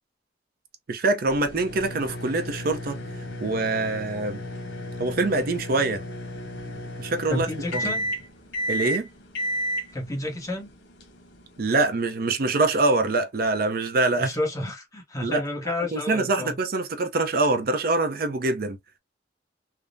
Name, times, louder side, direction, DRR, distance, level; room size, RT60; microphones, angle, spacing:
voice 1, 0.9-3.0 3.4-4.4 5.0-6.0 7.0-7.5 7.7-7.9 8.7-9.1 11.6-14.3 15.2-15.4 15.9-18.8, right 2 dB, 55° right, 0.5 m, -24 dB
sound 1, 1.3-11.6, equal, 90° left, 1.0 m, -33 dB
voice 2, 7.3-8.0 9.9-10.7 14.2-16.6, left 1 dB, 20° left, 0.8 m, -30 dB
3.4 x 2.0 x 2.5 m
head